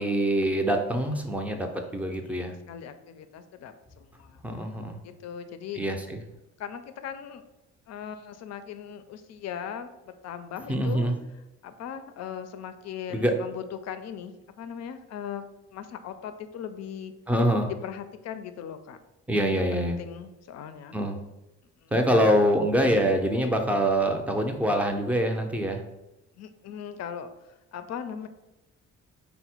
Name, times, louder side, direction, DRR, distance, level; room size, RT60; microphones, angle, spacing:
voice 1, 0.0-2.5 4.4-5.0 5.8-6.2 10.7-11.1 13.1-13.3 17.3-17.7 19.3-20.0 20.9-21.2 21.9-25.8, equal, 5° right, 4 dB, 0.5 m, -25 dB
voice 2, 2.3-4.4 5.0-5.8 6.6-7.4 7.9-11.1 11.6-15.4 15.7-17.1 17.8-19.0 19.7-21.0 21.8-22.4 22.9-23.1 26.4-27.3 27.7-28.3, left 8 dB, 60° left, 10 dB, 0.5 m, -39 dB
4.0 x 2.1 x 4.4 m, 0.98 s
cardioid pair, 90°, 30 cm